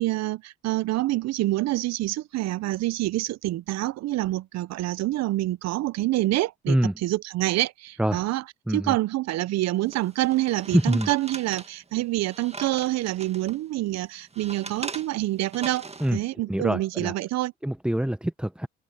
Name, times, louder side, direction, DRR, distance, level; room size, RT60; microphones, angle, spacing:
voice 1, 0.0-6.8 7.0-8.4 8.7-17.5, right 17 dB, 65° right, 1.1 m, -27 dB
sound 1, 9.9-13.6 14.0-16.1, right 3 dB, 20° right, 2.0 m, -40 dB
voice 2, 10.7-11.1 16.0-16.2 16.5-17.1 17.6-18.7, right 1 dB, 5° right, 1.4 m, -24 dB
hypercardioid pair, 60°, 29 cm